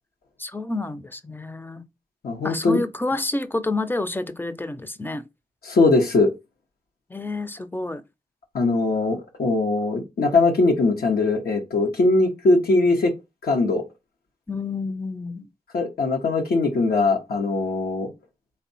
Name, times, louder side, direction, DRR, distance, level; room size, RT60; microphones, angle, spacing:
voice 1, 0.4-1.9 2.4-5.2 7.1-8.0 14.5-15.5, left 2 dB, 15° left, 0.4 m, -29 dB
voice 2, 2.2-2.8 5.6-6.3 8.5-13.1 13.4-13.8 15.7-18.1, left 3 dB, 90° left, 0.7 m, -21 dB
3.5 x 2.2 x 3.8 m
cardioid pair, 40°, 15 cm